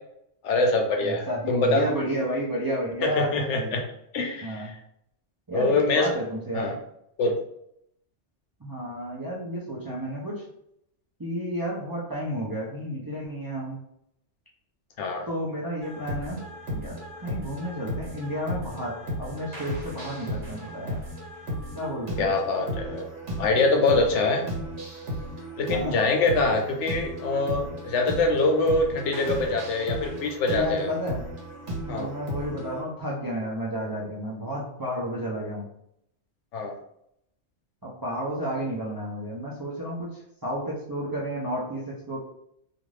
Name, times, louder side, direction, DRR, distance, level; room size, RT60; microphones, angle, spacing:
voice 1, 0.4-1.9 3.0-3.8 4.1-4.8 5.5-6.1 6.5-6.7 7.2-7.4 15.0-15.3 22.2-23.1 23.4-24.5 25.6-30.9 31.9-32.1 36.5-36.7, left 3 dB, 80° left, 3 dB, 0.9 m, -24 dB
voice 2, 1.0-3.8 4.4-4.7 5.5-6.7 8.6-10.4 11.2-13.8 15.3-16.4 16.7-21.0 21.7-22.3 25.7-26.0 30.5-31.3 31.8-35.7 37.8-42.2, equal, 30° right, -5 dB, 0.4 m, -31 dB
sound 1, 15.8-32.8, equal, 80° right, 1.2 m, -35 dB
2.5 x 2.4 x 3.2 m, 0.74 s
omnidirectional pair, 1.2 m